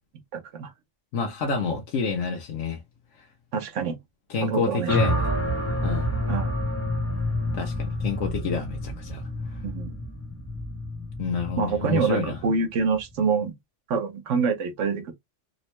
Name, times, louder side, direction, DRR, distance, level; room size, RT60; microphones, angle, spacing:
voice 1, 0.3-0.7 3.5-4.0 4.4-5.0 6.3-6.5 9.6-9.9 11.6-13.5 13.9-15.1, right 5 dB, 80° right, 1.0 m, -26 dB
voice 2, 1.1-2.8 3.2-3.3 4.3-5.3 5.8-6.1 7.5-9.2 11.2-12.4, left 5 dB, 85° left, 1.0 m, -28 dB
sound 1, 4.9-13.1, left 1 dB, 15° left, 0.6 m, -28 dB
3.0 x 2.1 x 2.9 m
omnidirectional pair, 1.2 m